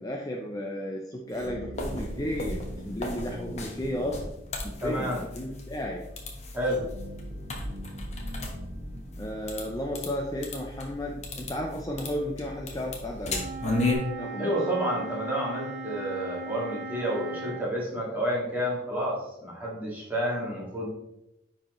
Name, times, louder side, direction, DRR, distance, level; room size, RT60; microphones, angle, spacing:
voice 1, 0.0-4.3 4.6-6.0 9.2-13.5 14.2-14.6, equal, 20° left, 0 dB, 0.5 m, -34 dB
sound 1, 1.3-4.6 6.6-9.9, equal, 70° right, 1.8 m, -41 dB
sound 2, 1.7-13.9, left 2 dB, 35° left, 1.2 m, -36 dB
voice 2, 4.8-5.2 6.5-6.8 14.4-20.9, equal, 10° right, -5 dB, 2.0 m, -30 dB
Wind instrument woodwind instrument, 13.2-17.7, right 3 dB, 55° right, 1.0 m, -38 dB
10.0 x 4.4 x 3.1 m, 0.87 s
head